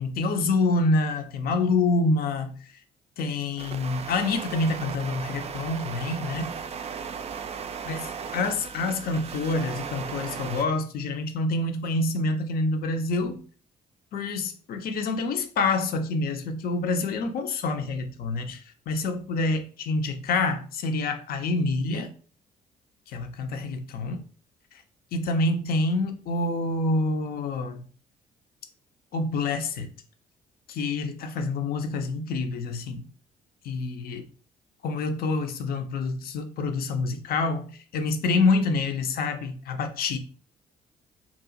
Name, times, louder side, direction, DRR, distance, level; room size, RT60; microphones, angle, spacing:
voice 1, 0.0-2.5 3.2-6.5 7.9-8.0 8.3-13.4 14.1-22.1 23.1-24.2 25.1-27.8 29.1-29.9 30.7-33.1 33.6-34.3 34.8-40.2, left 3 dB, 50° left, 0.6 m, -27 dB
sound 1, 3.6-10.6, right 6 dB, 35° right, 0.4 m, -36 dB
2.9 x 2.4 x 3.7 m
figure-of-eight pair, 45°, 20 cm